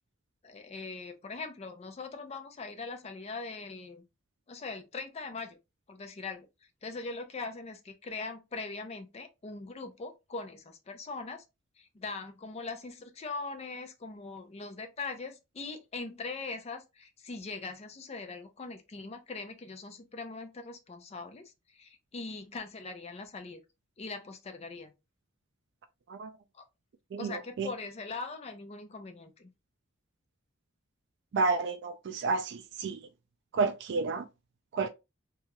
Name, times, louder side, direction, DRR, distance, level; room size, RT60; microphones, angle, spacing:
voice 1, 0.4-4.0 4.5-5.6 5.9-6.5 6.8-11.4 11.8-23.6 24.0-24.9 26.5-26.6 27.2-29.5, left 3 dB, 30° left, 0.4 m, -41 dB
voice 2, 27.1-27.7 31.3-33.0 33.5-34.2 34.7-34.9, right 4 dB, 55° right, 0.3 m, -30 dB
2.8 x 2.3 x 2.9 m
head